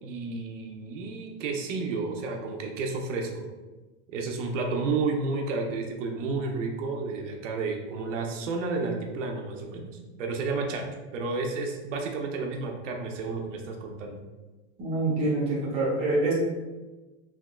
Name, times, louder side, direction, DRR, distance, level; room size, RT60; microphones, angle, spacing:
voice 1, 0.0-3.4 4.1-9.9 10.2-10.9 11.1-14.2, right 3 dB, 85° right, 2 dB, 0.7 m, -31 dB
voice 2, 14.8-16.3, right 2 dB, 15° right, -6 dB, 0.5 m, -26 dB
3.5 x 2.8 x 2.2 m, 1.2 s
supercardioid pair, 170°, 36 cm